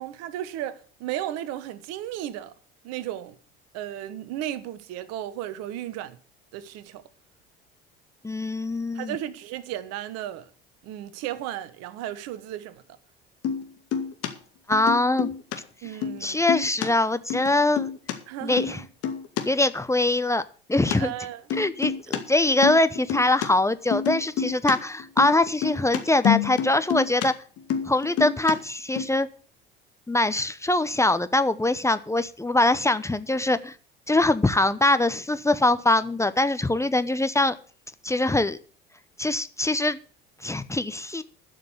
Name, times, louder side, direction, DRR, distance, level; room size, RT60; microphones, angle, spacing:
voice 1, 0.0-2.5 2.8-3.4 3.7-6.2 6.5-7.0 8.9-10.5 10.8-12.8 15.8-16.4 18.3-18.9 21.0-21.4 22.1-22.2, right 12 dB, 60° right, 1.2 m, -34 dB
voice 2, 8.2-9.2 14.7-15.3 16.2-17.9 18.4-18.8 19.5-20.4 20.7-21.1 21.5-27.3 27.8-29.3 30.1-33.8 34.1-37.5 38.0-38.6 39.2-40.0 40.4-41.2, left 2 dB, 10° left, 0.9 m, -23 dB
sound 1, 13.4-13.7 13.9-14.3 14.7-15.6 15.8-16.2 16.5-16.9 17.3-18.1 18.6-18.8 19.0-19.4 20.9-21.0 21.5-22.2 22.5-23.5 23.9-24.7 25.0-27.3 27.6-28.5 29.0-29.1, left 8 dB, 55° left, 2.2 m, -27 dB
12.5 x 6.5 x 8.5 m
hypercardioid pair, 65°, 29 cm